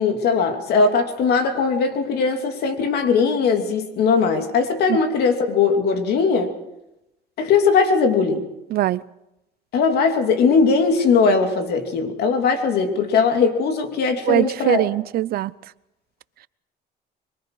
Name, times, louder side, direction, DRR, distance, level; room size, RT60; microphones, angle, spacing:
voice 1, 0.0-6.5 7.4-8.4 9.7-14.9, left 5 dB, 70° left, 2.8 m, -19 dB
voice 2, 8.7-9.0 14.3-15.5, right 14 dB, 65° right, 0.6 m, -21 dB
25.5 x 23.0 x 4.9 m
cardioid pair, 110°, 17 cm